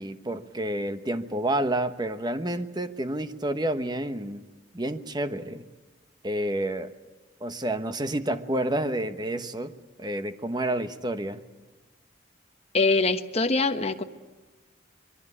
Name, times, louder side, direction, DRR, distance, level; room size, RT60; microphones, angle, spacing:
voice 1, 0.0-4.4 4.7-5.6 6.2-6.9 7.4-9.7 10.0-11.4, right 1 dB, 20° right, 10 dB, 1.1 m, -29 dB
voice 2, 12.7-14.0, left 3 dB, 30° left, 7 dB, 1.2 m, -23 dB
25.0 x 22.0 x 9.8 m, 1.2 s
head